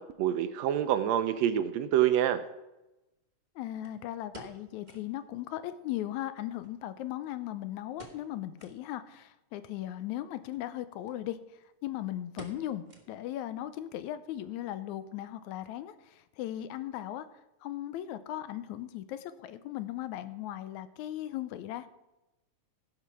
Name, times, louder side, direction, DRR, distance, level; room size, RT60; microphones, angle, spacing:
voice 1, 0.2-2.4, right 11 dB, 75° right, 10 dB, 1.7 m, -26 dB
voice 2, 3.6-11.4 11.8-17.3 17.6-21.9, left 13 dB, 90° left, 13 dB, 2.0 m, -37 dB
sound 1, 3.8-5.2 5.5-5.6 5.9-6.0 6.6-7.5 7.9-8.3 8.6-8.8 9.3-9.4 10.4-10.7 11.1-11.2 11.5-11.8 12.4-13.4 13.7-13.8 14.4-14.7 15.0-15.1, right 3 dB, 25° right, 1.0 m, -51 dB
16.0 x 5.8 x 6.0 m, 0.98 s
omnidirectional pair, 3.3 m